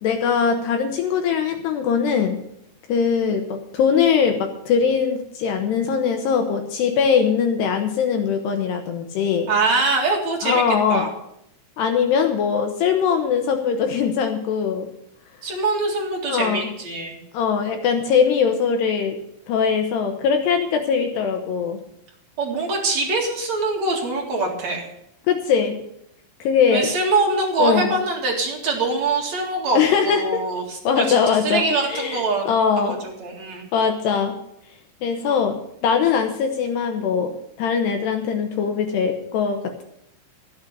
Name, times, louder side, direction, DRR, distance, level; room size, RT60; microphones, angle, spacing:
voice 1, 0.0-2.4 2.9-9.5 10.4-11.1 11.8-14.9 16.3-16.7 17.3-19.2 19.5-21.8 25.3-25.8 26.4-26.9 27.6-27.9 29.7-30.4 30.8-31.6 31.9-33.0 33.7-34.4 35.0-37.3 37.6-39.8, left 6 dB, 75° left, 5 dB, 2.6 m, -21 dB
voice 2, 9.5-10.6 10.9-11.1 15.4-17.2 22.4-24.9 26.7-32.5 32.8-33.6, right 3 dB, 50° right, 0 dB, 2.4 m, -23 dB
14.0 x 8.8 x 6.7 m, 0.76 s
omnidirectional pair, 5.8 m